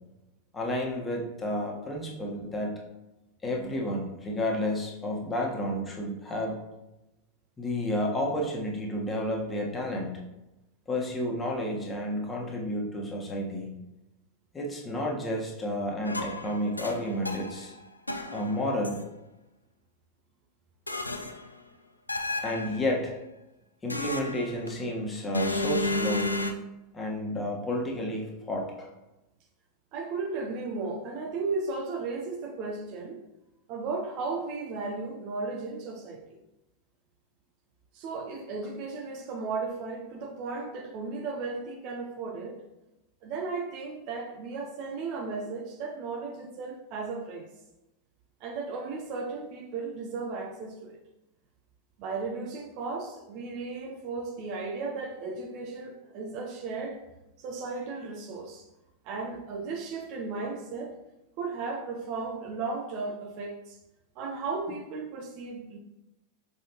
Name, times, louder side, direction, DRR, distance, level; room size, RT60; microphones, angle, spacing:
voice 1, 0.5-2.8 3.4-6.6 7.6-10.2 10.9-13.7 14.5-17.7 18.3-19.0 22.4-23.1 23.8-26.4 26.9-28.9, left 1 dB, 15° left, 1.4 m, -31 dB
sound 1, 16.0-17.7 18.1-19.0 20.9-21.5 22.1-22.9 23.9-24.8 25.3-26.5, left 2 dB, 85° left, 0.5 m, -32 dB
voice 2, 29.9-33.2 33.7-36.4 37.9-42.6 43.2-47.5 48.4-51.0 52.0-57.0 57.4-58.6 59.0-61.0 61.4-63.8 64.2-65.8, right 4 dB, 40° right, 0.8 m, -35 dB
6.2 x 5.3 x 3.0 m
figure-of-eight pair, 90°, 0 cm